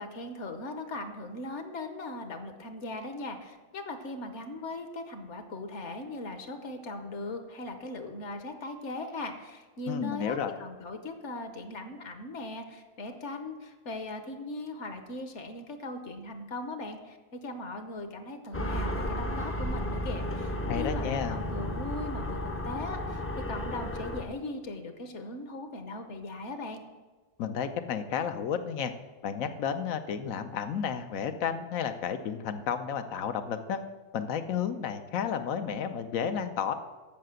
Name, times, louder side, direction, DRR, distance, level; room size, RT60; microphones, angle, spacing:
voice 1, 0.0-26.8, left 2 dB, 65° left, 7 dB, 1.2 m, -39 dB
voice 2, 9.9-10.5 20.7-21.4 27.4-28.9 29.2-33.8 34.1-36.7, left 7 dB, 85° left, 9 dB, 1.1 m, -32 dB
sound 1, 18.5-24.2, equal, 20° left, 0.3 m, -33 dB
7.7 x 6.6 x 7.6 m, 1.3 s
omnidirectional pair, 1.4 m